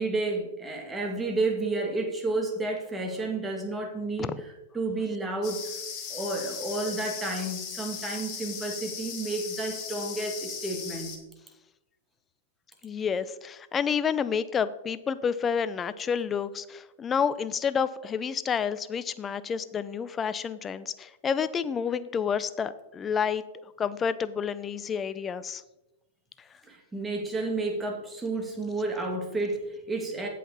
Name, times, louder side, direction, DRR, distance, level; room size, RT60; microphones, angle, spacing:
voice 1, 0.0-4.3 4.7-5.6 6.1-11.2 26.6-30.3, right 2 dB, 15° right, 2 dB, 2.2 m, -31 dB
sound 1, 5.4-11.2, left 7 dB, 40° left, 2.0 m, -38 dB
voice 2, 12.8-25.6, left 7 dB, 25° left, 15 dB, 0.5 m, -29 dB
8.3 x 8.0 x 4.1 m, 0.97 s
hypercardioid pair, 110°, 0 cm